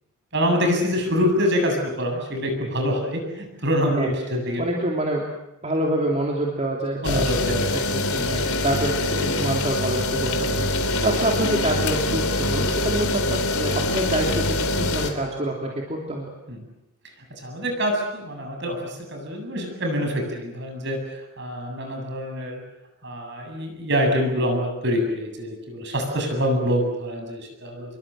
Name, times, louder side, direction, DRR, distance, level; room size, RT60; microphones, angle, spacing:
voice 1, 0.3-4.6 7.0-8.0 10.5-11.0 16.5-16.6 17.4-22.6 23.0-28.0, equal, 55° right, 3 dB, 7.8 m, -25 dB
voice 2, 4.6-5.2 5.6-7.2 8.1-16.3, right 1 dB, 30° right, -1 dB, 3.2 m, -26 dB
sound 1, 7.0-15.1, left 2 dB, 85° left, 3.6 m, -24 dB
28.0 x 22.5 x 7.8 m, 0.90 s
head